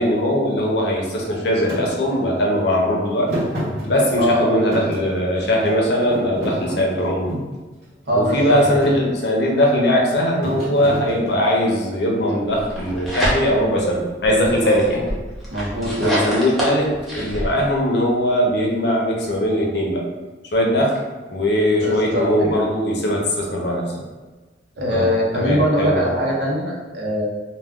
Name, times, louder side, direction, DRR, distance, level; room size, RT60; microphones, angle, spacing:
voice 1, 0.0-3.3 3.9-7.3 8.1-15.1 15.9-20.0 20.5-21.0 21.3-23.9 24.9-26.1, equal, 75° left, -1 dB, 0.6 m, -20 dB
Thump thud, 1.7-1.8 3.3-4.3 4.7-5.7 6.1-7.6 8.1-8.3 8.6-9.0 10.4-11.5, equal, 55° right, 1.1 m, -29 dB
voice 2, 4.2-4.6 8.1-8.6 14.6-15.1 15.5-16.2 21.8-22.6 24.8-27.3, equal, 75° right, -3 dB, 0.7 m, -22 dB
sound 1, 12.6-13.8 14.2-17.5, equal, ahead, 0.6 m, -26 dB
2.3 x 2.2 x 3.5 m, 1.3 s
head